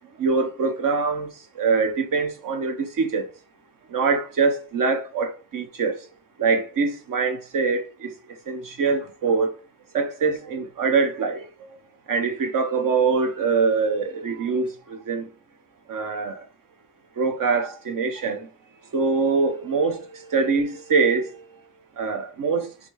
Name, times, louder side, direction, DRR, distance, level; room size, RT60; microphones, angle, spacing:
voice 1, 0.2-1.3 1.6-3.3 3.9-6.0 6.4-8.1 8.5-9.5 9.9-11.4 12.1-15.3 15.9-16.4 17.2-18.5 18.9-21.3 22.0-22.7, right 4 dB, 75° right, 0.9 m, -23 dB
4.0 x 3.6 x 3.1 m
cardioid pair, 80°, 33 cm